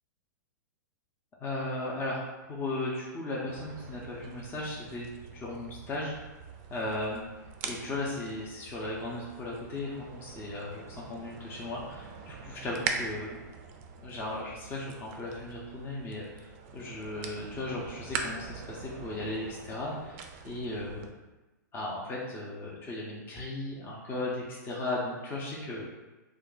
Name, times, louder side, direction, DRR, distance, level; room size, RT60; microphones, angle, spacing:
voice 1, 1.4-6.1 6.7-7.3 7.6-13.4 14.0-21.0 21.7-25.8, left 2 dB, 20° left, -5 dB, 0.6 m, -36 dB
sound 1, 3.5-21.1, right 5 dB, 40° right, 0.4 m, -42 dB
2.5 x 2.3 x 3.8 m, 1.1 s
hypercardioid pair, 120°, 10 cm